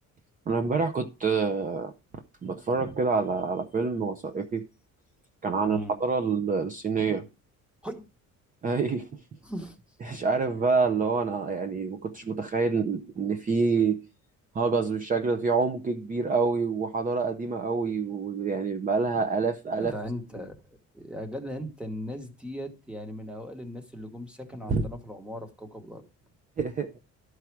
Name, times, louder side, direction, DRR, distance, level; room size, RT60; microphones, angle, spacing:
voice 1, 0.5-1.9 2.4-4.6 5.4-7.3 8.6-9.2 10.0-14.0 14.5-19.9 24.7-24.9 26.6-26.9, right 4 dB, 25° right, 0.6 m, -27 dB
voice 2, 5.6-6.0 7.8-8.1 9.4-9.8 19.8-26.0, equal, 5° right, 1.2 m, -38 dB
12.5 x 4.8 x 4.6 m
cardioid pair, 160°, 30 cm